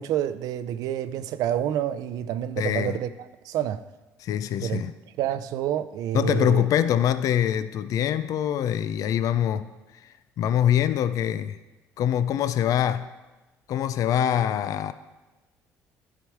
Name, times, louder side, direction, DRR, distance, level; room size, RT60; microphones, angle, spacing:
voice 1, 0.0-3.1 3.4-3.8 4.6-4.8 5.2-6.7, right 11 dB, 70° right, 0.5 m, -28 dB
voice 2, 2.6-3.0 4.2-4.9 6.1-9.7 10.4-11.6 12.0-13.1 13.7-14.9, left 10 dB, 60° left, 0.4 m, -24 dB
11.5 x 4.9 x 4.7 m
supercardioid pair, 80°, 6 cm